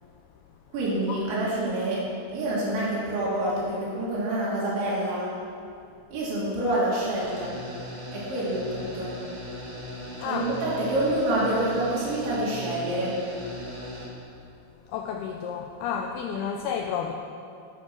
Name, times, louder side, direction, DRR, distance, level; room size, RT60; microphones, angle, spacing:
voice 1, 0.7-2.0 2.3-5.3 6.1-7.6 8.1-9.1 10.2-13.1, right 1 dB, 80° right, -6 dB, 5.0 m, -27 dB
sound 1, 7.2-14.1, left 1 dB, 50° right, 1.7 m, -38 dB
voice 2, 10.2-10.5 14.9-17.1, left 7 dB, 85° left, 3 dB, 2.2 m, -31 dB
11.5 x 8.0 x 6.2 m, 2.4 s
omnidirectional pair, 5.2 m